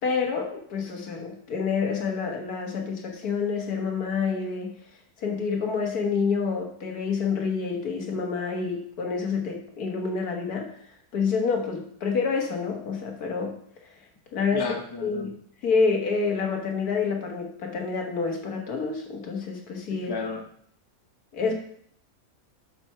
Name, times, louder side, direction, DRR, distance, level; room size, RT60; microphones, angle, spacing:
voice 1, 0.0-4.7 5.2-10.8 11.1-13.6 14.3-14.7 15.0-15.3 15.6-20.1 21.3-21.5, left 5 dB, 85° left, 2 dB, 1.8 m, -28 dB
voice 2, 14.5-15.3 19.9-20.4, left 3 dB, 30° left, 3 dB, 0.4 m, -33 dB
7.5 x 5.2 x 5.6 m, 0.63 s
omnidirectional pair, 1.6 m